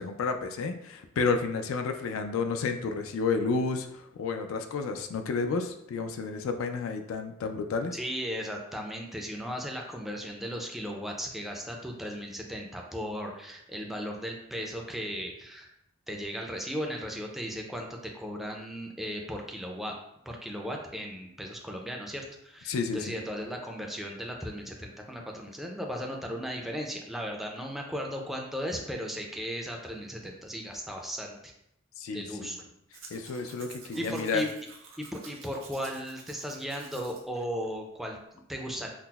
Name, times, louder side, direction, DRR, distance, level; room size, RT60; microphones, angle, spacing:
voice 1, 0.0-8.0 22.7-23.1 32.0-32.5 33.1-34.4, left 4 dB, 80° left, 6 dB, 0.3 m, -31 dB
voice 2, 7.9-15.7 16.1-19.9 20.3-31.5 32.1-32.7 33.9-34.5 35.0-38.9, equal, ahead, 0 dB, 0.4 m, -36 dB
Domestic sounds home sounds, 32.9-37.2 37.6-37.7, right 5 dB, 70° right, 0.6 m, -50 dB
5.6 x 2.0 x 2.3 m, 0.79 s
head